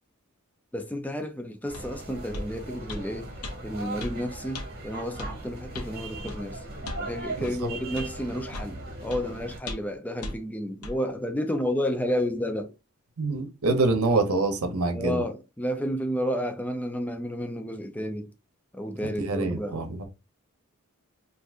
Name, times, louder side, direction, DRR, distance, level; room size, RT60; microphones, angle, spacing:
voice 1, 0.7-3.3 3.6-6.6 7.0-12.7 14.9-18.3 18.7-19.8, equal, 5° left, 0.4 m, -31 dB
sound 1, 1.7-1.9 2.3-2.5 2.9-3.0 3.4-3.6 4.0-4.2 4.5-4.7 5.2-5.3 5.7-5.9 6.3-6.4 6.8-7.1 7.4-7.6 8.0-8.1 8.5-8.7 9.1-9.2 9.7-9.9 10.2-10.4 10.8-11.0, left 1 dB, 80° left, 0.7 m, -36 dB
sound 2, 1.7-9.6, right 2 dB, 45° right, 1.0 m, -39 dB
voice 2, 13.2-15.2 19.0-20.1, right 3 dB, 70° right, 0.8 m, -26 dB
2.6 x 2.5 x 3.4 m
head